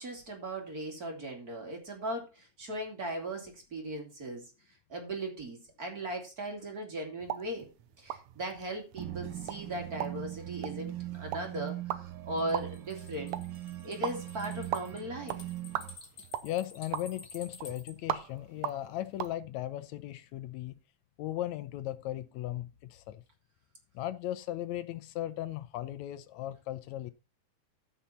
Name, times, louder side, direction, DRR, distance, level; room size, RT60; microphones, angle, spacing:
voice 1, 0.0-4.5 4.9-7.7 8.0-13.4 13.8-15.4, right 1 dB, 30° right, 2.7 m, -38 dB
sound 1, 7.2-19.4, right 12 dB, 80° right, 2.1 m, -41 dB
sound 2, 9.0-16.0, right 14 dB, 60° right, 1.2 m, -41 dB
sound 3, 12.4-17.9, left 4 dB, 40° left, 2.6 m, -51 dB
voice 2, 16.4-20.8 21.2-23.2 23.9-27.1, left 13 dB, 80° left, 2.0 m, -37 dB
14.5 x 5.8 x 4.1 m
omnidirectional pair, 3.3 m